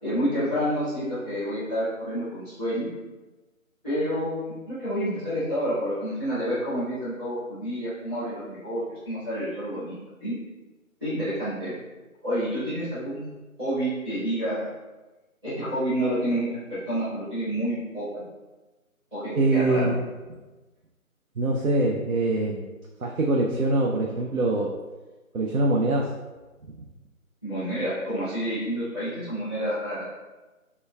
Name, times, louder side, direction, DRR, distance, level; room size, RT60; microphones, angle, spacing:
voice 1, 0.0-2.9 3.8-10.3 11.0-11.7 12.2-13.2 13.6-14.7 15.4-18.3 19.1-19.9 27.4-30.0, equal, 20° right, -18 dB, 1.2 m, -29 dB
voice 2, 19.3-20.0 21.4-22.7 23.0-24.7 25.3-26.1 26.7-26.8, right 2 dB, 80° right, -1 dB, 0.6 m, -23 dB
5.0 x 2.2 x 2.2 m, 1.2 s
figure-of-eight pair, 160°, 43 cm